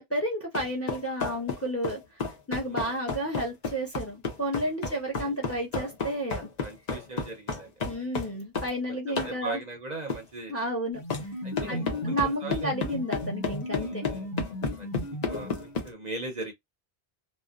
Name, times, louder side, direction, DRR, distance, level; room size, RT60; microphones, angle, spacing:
voice 1, 0.0-2.0 2.5-6.5 7.8-9.6 10.5-11.0 11.7-14.0, right 1 dB, 15° left, 0.8 m, -31 dB
sound 1, 0.5-8.8 9.2-9.4 10.1-10.2 11.1-11.3 11.6-15.9, left 4 dB, 45° left, 0.8 m, -32 dB
voice 2, 4.9-5.3 6.6-7.7 8.0-8.1 9.1-10.7 11.4-12.7 13.7-14.3 14.8-16.5, right 3 dB, 50° right, 0.7 m, -40 dB
sound 2, 10.9-15.9, left 1 dB, 65° left, 1.2 m, -36 dB
2.6 x 2.0 x 2.3 m
omnidirectional pair, 1.0 m